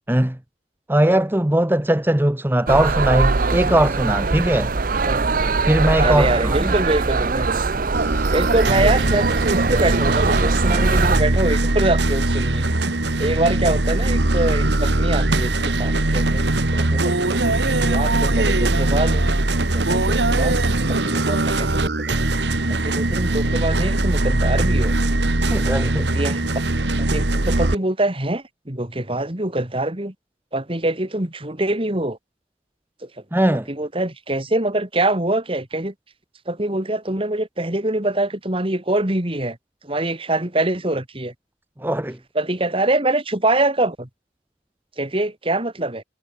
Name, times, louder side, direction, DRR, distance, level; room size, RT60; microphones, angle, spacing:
voice 1, 0.1-0.4 0.9-4.7 5.7-6.7 25.4-26.1 33.3-33.7 41.8-42.2, right 1 dB, 10° right, 0.9 m, -19 dB
sound 1, 2.7-11.2, right 3 dB, 50° right, 0.8 m, -21 dB
voice 2, 5.9-7.5 8.3-12.6 13.2-19.2 19.7-20.6 20.9-22.2 22.7-24.9 26.0-26.6 27.0-30.1 30.5-32.2 33.5-35.9 36.5-39.6 39.8-41.3 42.3-44.1 45.0-46.0, right 2 dB, 30° right, 2.5 m, -24 dB
sound 2, 7.9-27.7, right 2 dB, 70° right, 1.9 m, -20 dB
head